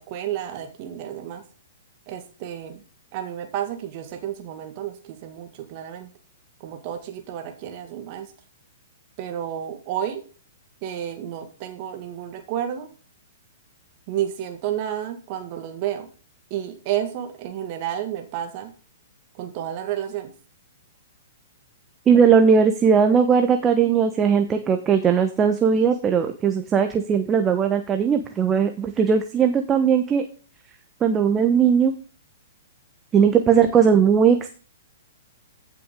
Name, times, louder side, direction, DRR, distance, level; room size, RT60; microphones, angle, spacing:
voice 1, 0.0-1.4 2.1-2.8 3.1-6.1 6.6-8.3 9.2-10.2 10.8-12.9 14.1-16.1 16.5-18.7 19.3-20.3, right 10 dB, 40° right, 6 dB, 2.0 m, -31 dB
voice 2, 22.1-30.3 31.0-31.9 33.1-34.5, right 7 dB, 20° right, 6 dB, 1.1 m, -18 dB
15.5 x 6.1 x 3.8 m, 0.37 s
figure-of-eight pair, 115°, 0 cm